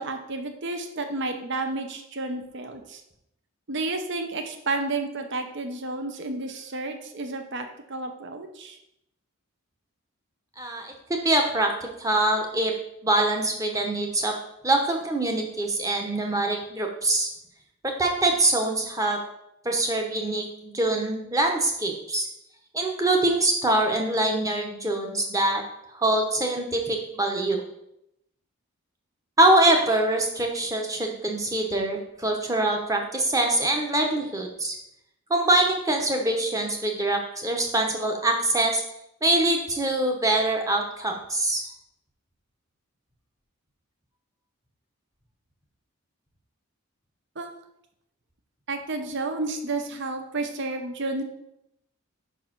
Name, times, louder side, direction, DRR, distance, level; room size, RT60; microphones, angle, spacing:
voice 1, 0.0-3.0 3.7-8.8 47.4-47.5 48.7-51.2, right 2 dB, 55° right, 6 dB, 0.7 m, -31 dB
voice 2, 10.6-10.9 11.2-12.7 13.0-14.3 14.6-17.3 17.8-19.2 19.6-22.3 22.7-25.6 25.9-27.6 29.4-34.7 35.3-38.8 39.2-41.6, right 2 dB, 15° right, 2 dB, 1.0 m, -24 dB
5.5 x 4.7 x 5.9 m, 0.81 s
head